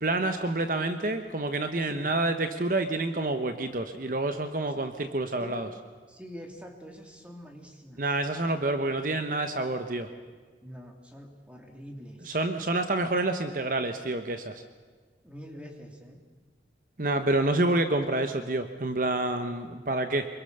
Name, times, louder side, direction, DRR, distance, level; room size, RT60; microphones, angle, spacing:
voice 1, 0.0-5.7 8.0-10.1 12.3-14.6 17.0-20.3, right 2 dB, 45° right, 7 dB, 1.1 m, -28 dB
voice 2, 6.1-8.1 10.6-12.4 15.2-16.2, equal, 5° right, 2 dB, 2.8 m, -45 dB
25.0 x 23.5 x 6.7 m, 1.5 s
head